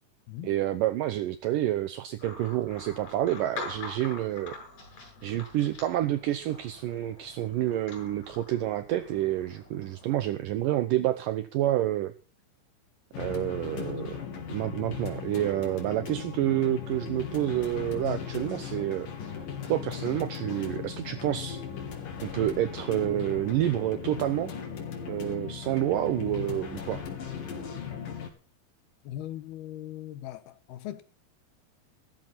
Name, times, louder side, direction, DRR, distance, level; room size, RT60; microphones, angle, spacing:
voice 1, 0.4-4.6 5.2-12.1 13.2-14.1 14.5-19.1 19.7-21.6 22.2-24.5 25.1-27.0, right 13 dB, 70° right, 2.3 m, -28 dB
sound 1, 2.2-10.1, left 4 dB, 40° left, 7.5 m, -44 dB
sound 2, 13.1-28.3, left 7 dB, 65° left, 4.5 m, -37 dB
voice 2, 29.0-31.0, left 13 dB, 85° left, 3.3 m, -39 dB
16.5 x 14.0 x 4.2 m
omnidirectional pair, 4.3 m